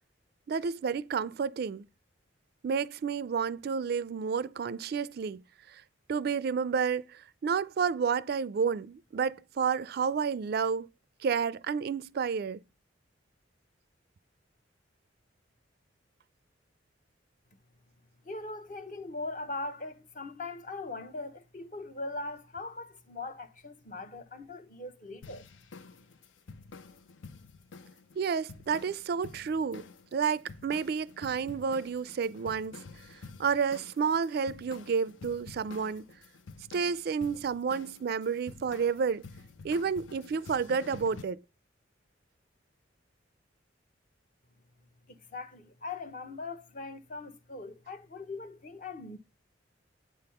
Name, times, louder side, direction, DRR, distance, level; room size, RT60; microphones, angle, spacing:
voice 1, 0.5-1.9 2.6-5.4 5.7-5.8 6.1-10.9 11.2-12.6 28.2-29.8 30.1-32.8 33.1-36.0 36.7-39.2 39.6-41.4, right 6 dB, 55° right, 0.3 m, -30 dB
voice 2, 18.2-25.4 45.1-49.2, left 3 dB, 45° left, 0.9 m, -40 dB
sound 1, 25.2-41.2, left 4 dB, 80° left, 0.6 m, -50 dB
8.5 x 3.5 x 5.6 m
head